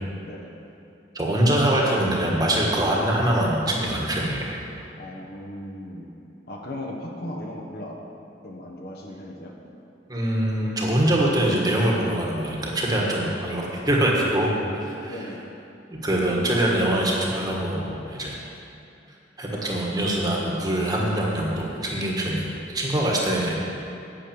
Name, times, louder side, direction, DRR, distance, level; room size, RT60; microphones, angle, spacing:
voice 1, 1.1-4.5 10.1-14.5 14.7-15.2 16.0-18.4 19.4-23.5, right 1 dB, 20° right, -3 dB, 1.5 m, -23 dB
voice 2, 5.0-6.1 6.5-8.0 8.4-9.6 15.1-15.4 16.2-16.6 19.5-19.8, left 1 dB, 55° left, -1 dB, 1.3 m, -37 dB
9.0 x 6.5 x 8.7 m, 2.8 s
head